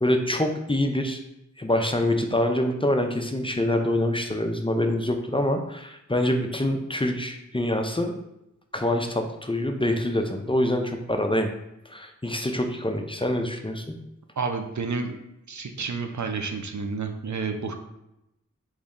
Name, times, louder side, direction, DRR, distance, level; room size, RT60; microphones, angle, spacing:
voice 1, 0.0-1.2 1.6-8.1 8.7-11.5 11.9-13.8, left 1 dB, 15° left, 4 dB, 0.5 m, -25 dB
voice 2, 14.4-15.2 15.5-17.8, right 4 dB, 70° right, 5 dB, 0.5 m, -30 dB
4.0 x 3.1 x 3.6 m, 0.87 s
wide cardioid pair, 55°, 30 cm